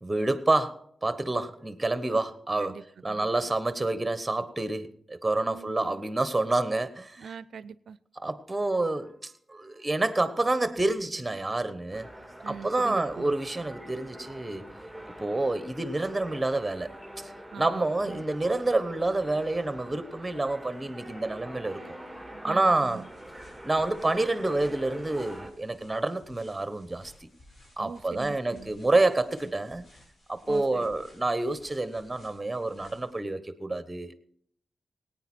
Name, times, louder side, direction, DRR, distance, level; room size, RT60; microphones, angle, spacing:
voice 1, 0.0-7.3 8.2-12.1 12.5-14.6 15.2-21.9 22.4-23.0 23.6-27.3 27.8-29.8 30.3-34.2, right 2 dB, 20° right, 12 dB, 1.1 m, -28 dB
voice 2, 2.6-3.3 5.5-6.0 7.2-8.0 12.4-13.4 17.5-18.2 22.4-23.1 27.8-28.7 30.5-30.9, right 6 dB, 75° right, 19 dB, 0.4 m, -43 dB
sound 1, 11.9-25.5, right 1 dB, 10° left, 2.5 m, -45 dB
sound 2, 22.6-33.2, left 1 dB, 60° left, 4.9 m, -58 dB
17.5 x 9.1 x 4.4 m, 0.67 s
supercardioid pair, 45°, 0 cm